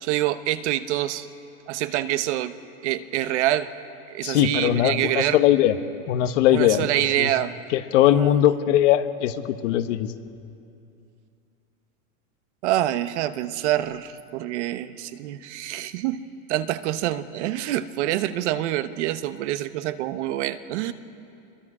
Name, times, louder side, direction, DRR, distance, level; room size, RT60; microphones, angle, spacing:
voice 1, 0.0-1.3 1.7-2.5 2.8-3.7 4.1-5.4 6.5-7.5 8.2-8.3 12.6-16.2 16.5-20.9, right 13 dB, 50° right, 12 dB, 1.0 m, -26 dB
voice 2, 4.2-5.8 6.1-7.3 7.7-10.1, left 12 dB, 55° left, 10 dB, 1.1 m, -20 dB
27.0 x 22.5 x 4.9 m, 2.6 s
supercardioid pair, 155°, 44 cm